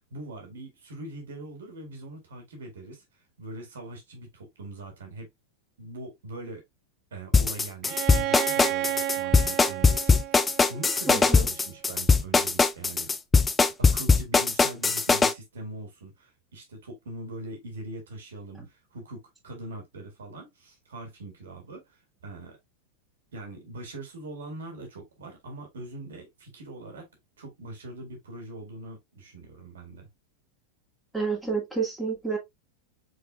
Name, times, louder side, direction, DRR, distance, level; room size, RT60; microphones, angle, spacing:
voice 1, 0.1-5.3 5.8-6.6 7.1-13.1 13.8-22.6 23.3-27.1 27.4-30.1, right 2 dB, 65° right, 1.9 m, -42 dB
sound 1, 7.3-15.3, left 4 dB, 15° left, 0.4 m, -20 dB
Bowed string instrument, 7.8-11.6, right 14 dB, 40° right, 0.5 m, -32 dB
voice 2, 11.1-11.4 31.1-32.4, right 4 dB, 5° right, 2.2 m, -29 dB
4.8 x 4.6 x 2.3 m
figure-of-eight pair, 90°, 0 cm